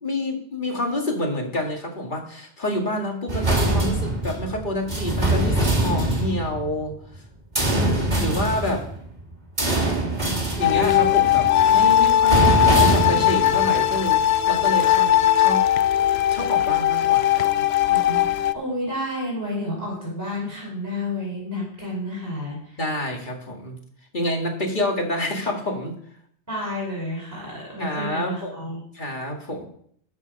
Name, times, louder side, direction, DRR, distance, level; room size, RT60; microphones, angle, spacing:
voice 1, 0.0-7.2 8.2-8.8 10.6-15.7 16.3-17.7 22.8-23.8 24.1-26.0 27.8-28.5 28.9-29.7, left 1 dB, 45° left, 1 dB, 2.3 m, -28 dB
sound 1, 3.3-7.2 7.5-14.3 14.7-14.8, right 2 dB, 40° right, 2.6 m, -24 dB
voice 2, 7.7-8.4 17.9-22.8 26.5-28.8, left 1 dB, 15° right, -5 dB, 4.6 m, -31 dB
sound 2, 10.6-18.5, left 11 dB, 70° left, 0.8 m, -19 dB
13.5 x 7.1 x 5.4 m, 0.64 s
omnidirectional pair, 1.1 m